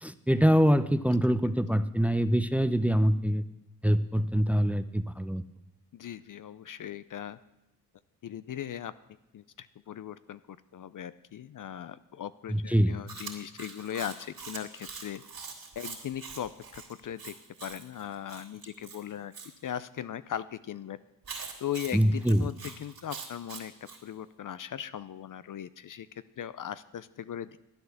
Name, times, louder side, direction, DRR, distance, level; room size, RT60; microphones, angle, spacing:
voice 1, 0.0-3.4 3.8-5.4 12.5-12.9 21.9-22.5, equal, 5° right, 12 dB, 0.7 m, -24 dB
voice 2, 5.9-7.4 8.2-8.9 9.3-17.3 17.6-19.3 19.6-21.0 21.6-23.7 24.0-26.1 26.4-27.6, left 10 dB, 50° left, 15 dB, 0.6 m, -39 dB
Chewing mastication, 13.1-19.5 21.2-24.0, right 5 dB, 55° right, 3.3 m, -44 dB
11.5 x 9.5 x 7.1 m, 0.89 s
supercardioid pair, 55°, 42 cm